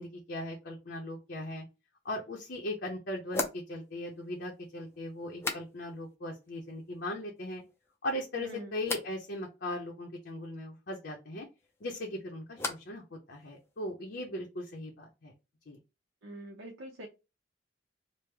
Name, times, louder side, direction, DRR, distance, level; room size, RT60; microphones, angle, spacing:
voice 1, 0.0-1.6 2.0-7.6 8.0-11.5 11.8-15.3 15.7-15.8, left 1 dB, 55° left, 0 dB, 0.7 m, -38 dB
sound 1, 2.0-2.1 3.3-6.1 6.4-7.0 7.4-8.0 8.8-9.2 11.6-13.0 13.3-13.9, left 3 dB, 15° left, 0.4 m, -41 dB
voice 2, 8.4-8.7 16.2-17.1, right 1 dB, 80° right, 0 dB, 0.7 m, -44 dB
3.2 x 2.1 x 3.3 m, 0.27 s
head